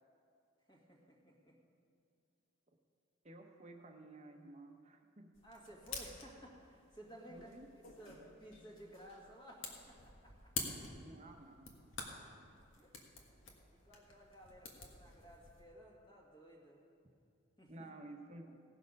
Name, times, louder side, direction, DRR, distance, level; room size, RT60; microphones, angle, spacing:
voice 1, 0.7-1.6 5.4-7.5 8.0-10.8 12.7-12.9 13.4-16.8 17.6-17.9, right 1 dB, 20° left, -2 dB, 1.7 m, -57 dB
voice 2, 3.2-5.4 7.3-7.7 11.0-11.8 17.7-18.6, right 2 dB, 35° right, 4 dB, 0.9 m, -54 dB
sound 1, 5.3-15.6, left 4 dB, 75° left, 1.6 m, -49 dB
17.0 x 6.5 x 5.3 m, 2.5 s
head